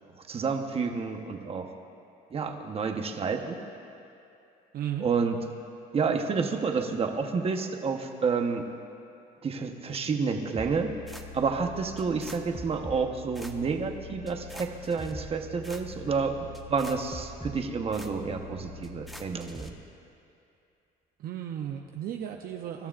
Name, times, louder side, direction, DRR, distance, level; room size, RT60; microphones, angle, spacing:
voice 1, 0.3-1.7 2.3-3.6 5.0-5.4 5.9-8.7 9.4-11.0 11.3-16.4 16.7-19.7, right 5 dB, 35° right, 4 dB, 1.1 m, -29 dB
voice 2, 4.7-5.1 21.2-22.9, right 10 dB, 60° right, 3 dB, 0.7 m, -35 dB
sound 1, 10.5-19.7, left 1 dB, ahead, 0.9 m, -43 dB
24.5 x 12.5 x 2.5 m, 2.6 s
cardioid pair, 110°, 17 cm